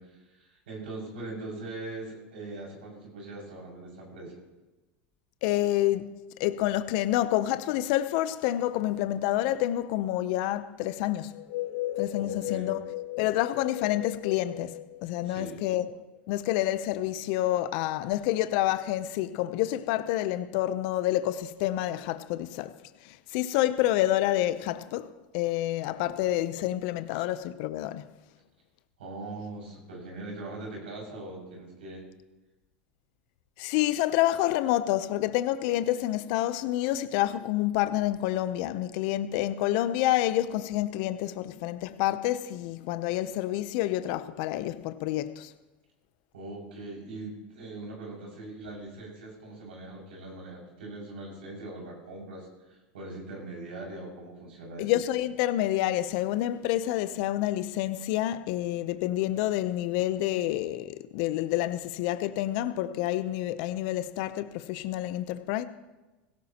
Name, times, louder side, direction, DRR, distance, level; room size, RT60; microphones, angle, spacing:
voice 1, 0.0-4.3 12.2-12.8 15.2-15.6 29.0-32.0 46.3-54.9, right 2 dB, 90° right, 6.2 m, -41 dB
voice 2, 5.4-6.1 6.4-11.3 12.0-12.8 13.2-15.9 16.3-22.7 23.0-28.1 33.6-45.5 54.8-65.6, left 14 dB, 65° left, 0.7 m, -28 dB
sound 1, 11.3-15.9, left 15 dB, 80° left, 5.6 m, -36 dB
17.0 x 17.0 x 2.9 m
hypercardioid pair, 100°, 5 cm